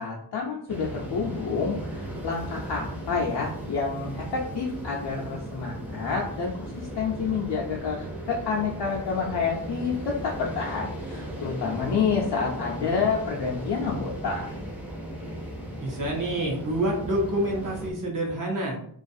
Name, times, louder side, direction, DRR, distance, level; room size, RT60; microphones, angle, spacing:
voice 1, 0.0-14.5, left 5 dB, 70° left, -3 dB, 0.5 m, -29 dB
sound 1, 0.7-17.9, right 1 dB, 5° right, 0.5 m, -37 dB
voice 2, 15.8-18.8, right 1 dB, 50° right, -2 dB, 0.7 m, -27 dB
2.3 x 2.3 x 2.6 m, 0.66 s
wide cardioid pair, 130°, 41 cm